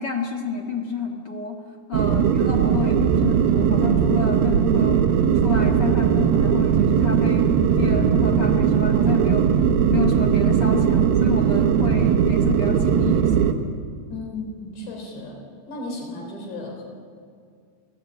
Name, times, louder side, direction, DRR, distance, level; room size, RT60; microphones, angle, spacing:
voice 1, 0.0-1.6 1.9-5.1 5.4-9.5 9.9-13.6, left 5 dB, 55° left, 0 dB, 1.1 m, -30 dB
sound 1, 1.9-13.5, right 7 dB, 70° right, 2.6 m, -19 dB
voice 2, 14.1-15.4 15.7-16.8, left 2 dB, 75° left, 1 dB, 6.0 m, -34 dB
29.5 x 16.5 x 8.9 m, 2.2 s
omnidirectional pair, 5.0 m